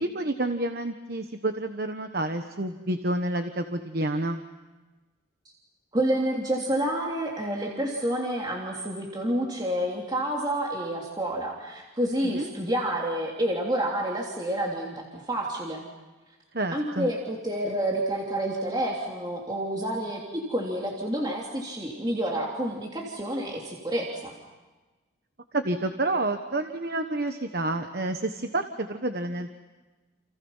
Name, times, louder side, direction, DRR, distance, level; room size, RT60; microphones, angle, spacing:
voice 1, 0.0-4.4 12.2-12.5 16.5-17.1 25.5-29.5, right 2 dB, 50° right, 7 dB, 1.3 m, -29 dB
voice 2, 5.9-15.9 16.7-24.3, right 1 dB, 20° right, -2 dB, 3.2 m, -29 dB
29.5 x 29.0 x 5.7 m, 1.2 s
head